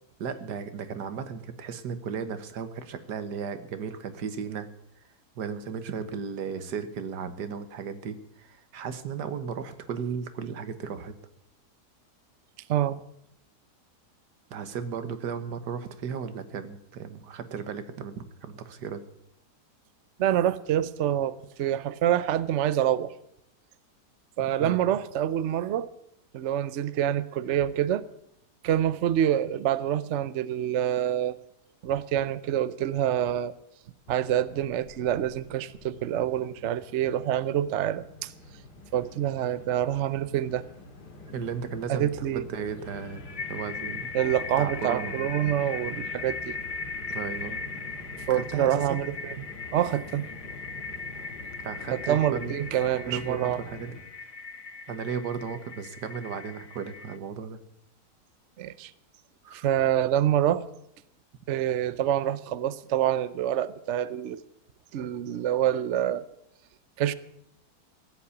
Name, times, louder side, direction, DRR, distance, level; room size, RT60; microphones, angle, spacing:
voice 1, 0.2-4.7 5.4-11.2 14.5-19.0 24.6-24.8 41.3-43.2 43.5-44.1 44.6-45.3 47.1-47.6 48.3-49.0 51.6-52.6 53.1-54.0 54.9-57.6 59.4-59.7, right 6 dB, 80° right, 1.7 m, -35 dB
voice 2, 12.7-13.0 20.2-23.1 24.4-25.9 26.3-28.0 28.6-31.4 31.8-33.5 34.1-38.3 38.9-40.6 41.9-42.4 44.1-46.6 48.3-49.5 49.7-50.3 51.9-53.6 58.6-58.9 59.5-60.6 61.5-64.4 64.9-66.2 67.0-67.1, right 11 dB, 60° right, 0.8 m, -26 dB
Train, 34.1-54.0, left 2 dB, 80° left, 2.6 m, -46 dB
sound 1, 42.9-57.2, left 4 dB, 35° left, 0.5 m, -39 dB
15.5 x 8.4 x 8.3 m
omnidirectional pair, 1.8 m